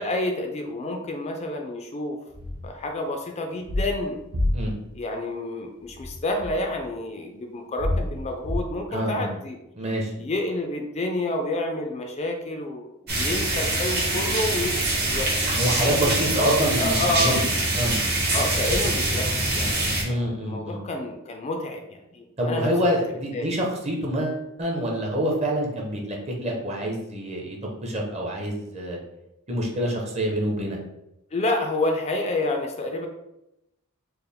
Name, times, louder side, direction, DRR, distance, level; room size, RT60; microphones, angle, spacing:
voice 1, 0.0-2.2 2.6-4.2 4.9-9.6 10.2-12.9 13.1-17.4 18.3-22.7 23.3-23.5 31.3-33.1, left 2 dB, 30° left, 4 dB, 0.3 m, -29 dB
sound 1, 2.3-2.7 3.7-3.9 4.3-4.8 5.9-6.9 7.8-8.6, left 1 dB, 75° right, 0.7 m, -27 dB
voice 2, 8.9-9.3 9.8-10.1 15.5-17.4 17.7-18.0 20.0-20.8 22.4-27.6 27.8-29.0 29.5-30.8, equal, 30° right, 0 dB, 0.8 m, -26 dB
sound 2, 13.1-20.0, right 2 dB, 50° right, 1.1 m, -24 dB
4.4 x 2.0 x 3.5 m, 0.87 s
head